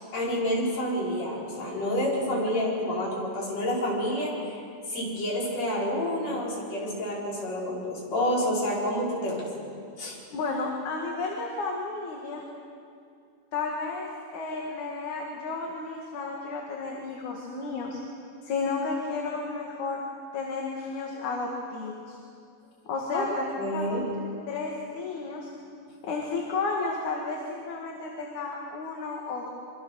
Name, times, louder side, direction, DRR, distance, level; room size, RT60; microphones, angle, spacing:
voice 1, 0.1-4.6 4.9-9.4 10.0-10.2 23.1-23.3 23.6-24.1, left 1 dB, 55° left, -4 dB, 6.2 m, -29 dB
voice 2, 10.3-12.4 13.5-18.0 18.4-20.0 20.3-22.2 22.9-24.0 24.5-25.5 26.0-29.5, left 3 dB, 70° left, -1 dB, 3.4 m, -32 dB
25.0 x 25.0 x 6.5 m, 2.5 s
omnidirectional pair, 3.5 m